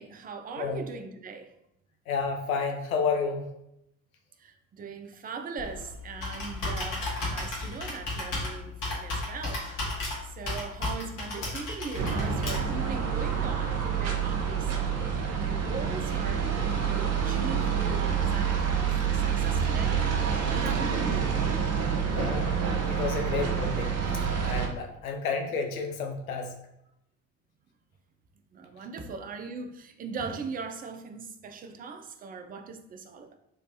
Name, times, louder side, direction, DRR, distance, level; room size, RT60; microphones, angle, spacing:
voice 1, 0.0-1.5 4.4-10.0 10.3-16.5 16.7-20.1 20.5-21.4 28.5-33.3, right 4 dB, 20° right, 6 dB, 0.4 m, -40 dB
voice 2, 2.1-3.5 22.1-22.6 22.9-23.9 24.4-26.6, left 5 dB, 80° left, 4 dB, 0.6 m, -31 dB
Computer keyboard, 5.6-12.9, left 2 dB, 50° left, 1.5 m, -34 dB
sound 1, 12.0-24.7, right 7 dB, 40° right, 0.8 m, -27 dB
3.2 x 3.1 x 2.8 m, 0.82 s
figure-of-eight pair, 55°, 42 cm